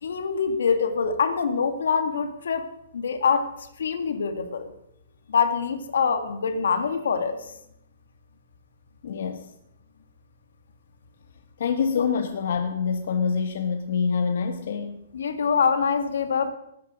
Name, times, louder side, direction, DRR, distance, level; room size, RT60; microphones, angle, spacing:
voice 1, 0.0-4.7 5.3-7.5 15.1-16.5, left 6 dB, 90° left, 2.1 m, -25 dB
voice 2, 9.0-9.5 11.6-15.0, left 6 dB, 65° left, 1.4 m, -26 dB
19.5 x 9.7 x 6.3 m
hypercardioid pair, 165°, 0 cm